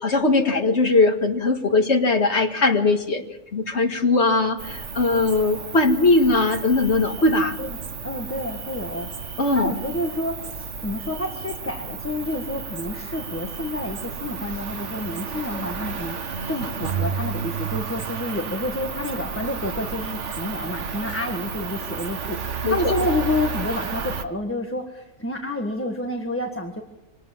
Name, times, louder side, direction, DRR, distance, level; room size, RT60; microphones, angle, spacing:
voice 1, 0.0-3.2 3.5-7.6 9.4-9.7 22.6-22.8, left 3 dB, 70° left, 4 dB, 2.3 m, -20 dB
Cricket, 4.6-24.2, right 5 dB, 90° right, 1.5 m, -32 dB
voice 2, 8.0-9.1 9.5-26.8, left 1 dB, 10° left, 3 dB, 1.6 m, -29 dB
25.5 x 19.5 x 7.5 m, 0.93 s
omnidirectional pair, 1.2 m